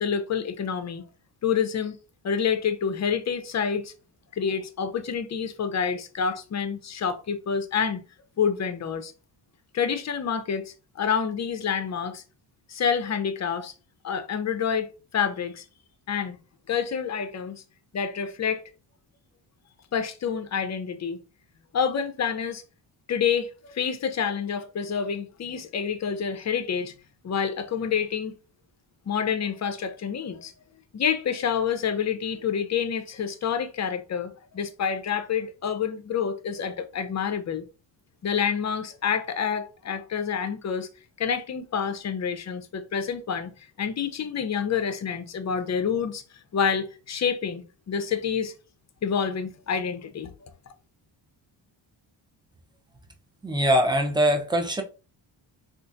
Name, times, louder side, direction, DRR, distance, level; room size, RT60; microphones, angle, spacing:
voice 1, 0.0-1.0 1.4-2.0 2.2-3.9 4.3-8.0 8.4-9.1 9.7-12.2 12.7-13.7 14.0-15.6 16.1-16.4 16.7-17.6 17.9-18.6 19.9-21.2 21.7-22.6 23.1-26.9 27.2-28.4 29.1-30.5 30.9-37.6 38.2-40.9 41.2-43.5 43.8-46.2 46.5-48.5 49.0-50.3, left 7 dB, 35° left, 0.6 m, -28 dB
voice 2, 53.4-54.8, equal, 10° right, 0.6 m, -22 dB
3.6 x 2.5 x 2.6 m
cardioid pair, 85°, 47 cm